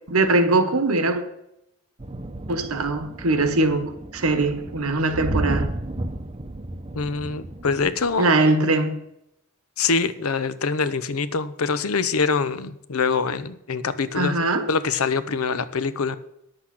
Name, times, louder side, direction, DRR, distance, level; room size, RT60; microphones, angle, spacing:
voice 1, 0.1-1.2 2.5-5.7 8.2-9.0 14.1-14.7, right 2 dB, 90° right, 1.3 m, -21 dB
sound 1, 2.0-8.2, right 1 dB, 25° right, 0.7 m, -32 dB
voice 2, 7.0-8.3 9.8-14.4 14.7-16.2, left 5 dB, 85° left, 0.7 m, -24 dB
10.0 x 8.0 x 6.0 m
head